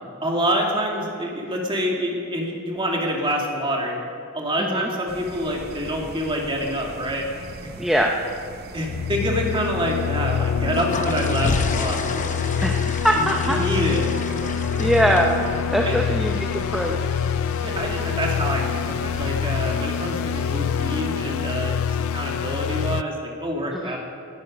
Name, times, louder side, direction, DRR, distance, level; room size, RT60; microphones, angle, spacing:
voice 1, 0.2-4.0 4.3-7.3 8.7-12.6 13.2-14.2 14.8-14.9 15.9-16.1 17.6-24.0, equal, 25° right, -1 dB, 2.2 m, -27 dB
voice 2, 4.6-4.9 7.8-8.1 12.6-13.6 14.8-17.0 23.7-24.0, equal, ahead, 0 dB, 0.6 m, -22 dB
sound 1, 5.1-21.1, right 3 dB, 45° right, 0.8 m, -40 dB
sound 2, 8.9-23.0, left 7 dB, 65° left, 0.3 m, -26 dB
sound 3, 10.5-19.5, left 3 dB, 35° left, 0.8 m, -33 dB
19.5 x 11.0 x 5.1 m, 2.5 s
head